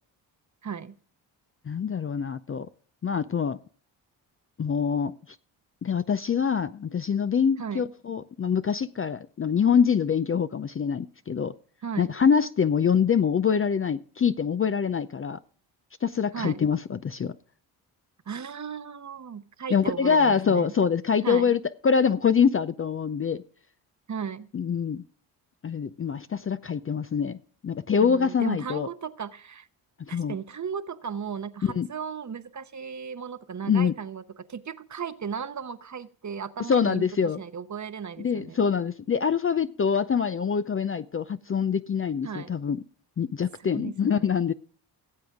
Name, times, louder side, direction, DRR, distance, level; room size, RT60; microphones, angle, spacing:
voice 1, 0.6-1.0 7.6-7.9 11.8-12.2 16.3-16.6 18.3-20.7 21.2-21.6 24.1-24.5 28.0-29.7 30.1-38.6 42.2-42.5 43.6-44.5, right 7 dB, 35° right, 12 dB, 0.9 m, -36 dB
voice 2, 1.7-2.7 3.0-3.6 4.6-5.1 5.8-11.5 12.0-15.4 16.0-17.3 19.7-23.4 24.5-25.0 25.6-27.4 27.6-28.9 30.1-30.4 31.6-31.9 33.7-33.9 36.7-37.4 38.2-42.8 43.2-44.5, left 6 dB, 30° left, 12 dB, 0.5 m, -25 dB
18.5 x 7.8 x 3.6 m, 0.43 s
hypercardioid pair, 50°, 49 cm